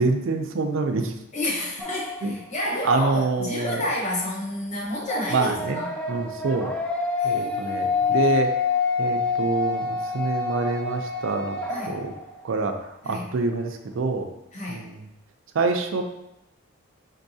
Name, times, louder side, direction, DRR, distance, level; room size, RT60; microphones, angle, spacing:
voice 1, 0.0-1.1 2.2-2.3 2.8-3.8 5.3-5.8 6.1-6.7 7.2-8.5 9.0-11.6 11.9-12.1 12.4-12.8 13.0-14.3 14.7-15.0 15.5-16.0, right 3 dB, 65° right, 5 dB, 0.4 m, -26 dB
voice 2, 1.3-5.9 7.2-8.5 11.7-11.9 13.0-13.3 14.5-14.9, left 1 dB, 35° left, -4 dB, 0.9 m, -30 dB
sound 1, 1.8-2.6 5.0-12.5, left 5 dB, 5° left, 0.3 m, -27 dB
4.5 x 3.9 x 2.7 m, 0.86 s
head